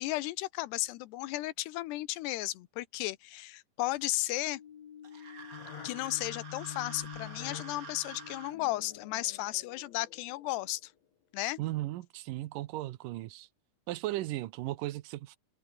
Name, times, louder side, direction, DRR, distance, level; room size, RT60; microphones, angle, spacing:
voice 1, 0.0-4.6 5.8-10.9 11.3-11.6, left 17 dB, 80° left, 2.9 m, -34 dB
sound 1, 4.5-10.9, left 9 dB, 50° left, 2.4 m, -47 dB
sound 2, 5.0-8.5, right 5 dB, 35° right, 1.3 m, -48 dB
voice 2, 11.6-13.5 13.9-15.4, right 16 dB, 85° right, 1.9 m, -36 dB
omnidirectional pair, 5.0 m